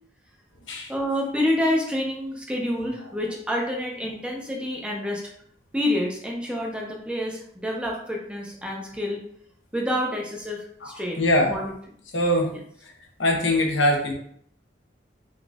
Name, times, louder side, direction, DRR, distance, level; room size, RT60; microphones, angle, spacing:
voice 1, 0.9-5.2 5.7-9.2 9.7-11.7, left 1 dB, 5° right, -1 dB, 0.7 m, -28 dB
voice 2, 11.2-11.5 12.1-12.5 13.2-14.1, left 1 dB, 80° left, 0 dB, 1.0 m, -22 dB
4.0 x 2.5 x 3.5 m, 0.65 s
head